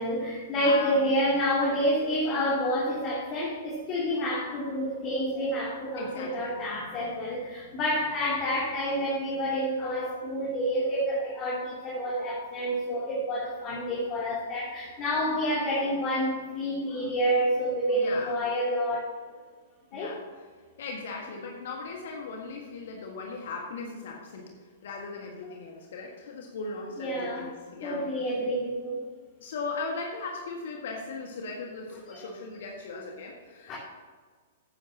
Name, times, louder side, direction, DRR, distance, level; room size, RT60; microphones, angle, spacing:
voice 1, 0.0-19.1 19.9-20.1 27.0-27.5 27.8-29.0 32.1-32.2 33.7-33.8, equal, 35° left, -5 dB, 2.9 m, -28 dB
voice 2, 0.6-1.1 5.9-6.6 17.9-18.3 19.9-20.5 20.8-24.5 24.8-28.4 29.4-33.8, left 3 dB, 60° left, 0 dB, 1.7 m, -38 dB
14.0 x 10.0 x 2.9 m, 1.5 s
figure-of-eight pair, 110°, 0 cm